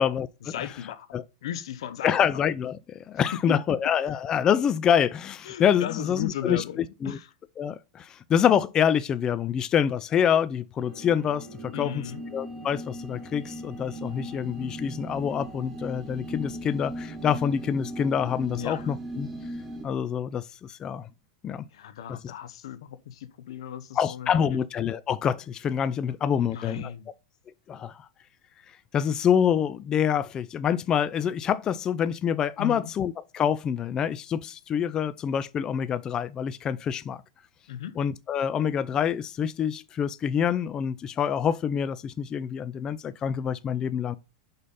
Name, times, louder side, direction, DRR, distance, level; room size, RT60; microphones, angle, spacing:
voice 1, 0.4-1.1 1.4-2.1 3.5-3.6 5.5-7.3 11.7-12.2 18.5-18.9 21.7-24.6 26.4-27.1 32.6-32.9 37.7-37.9, left 10 dB, 75° left, 0.8 m, -36 dB
voice 2, 2.0-7.2 7.6-12.0 12.3-19.3 19.8-21.1 21.4-21.7 24.0-26.9 27.7-28.1 28.9-37.2 38.0-44.1, left 8 dB, 25° left, 0.3 m, -26 dB
sound 1, 10.8-19.8, right 1 dB, 15° right, 2.2 m, -38 dB
5.1 x 4.0 x 5.4 m
hypercardioid pair, 130°, 3 cm